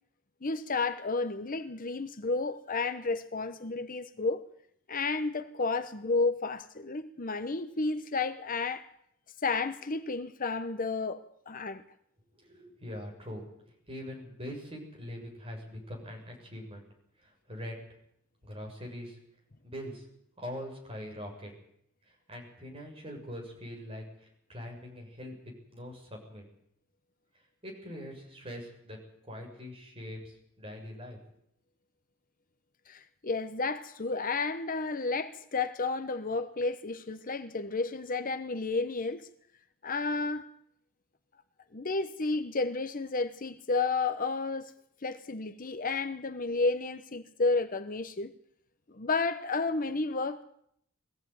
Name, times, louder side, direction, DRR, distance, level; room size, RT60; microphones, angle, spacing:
voice 1, 0.4-4.4 4.9-8.9 9.4-11.8 32.9-39.3 39.8-40.4 41.7-44.7 45.0-48.3 48.9-50.4, left 3 dB, 40° left, 0.9 m, -31 dB
voice 2, 12.3-16.8 17.2-17.8 18.4-19.2 19.6-20.0 20.4-21.5 22.1-26.5 27.6-29.0 29.3-31.2, equal, 25° right, 7.0 m, -43 dB
21.5 x 15.5 x 9.4 m
head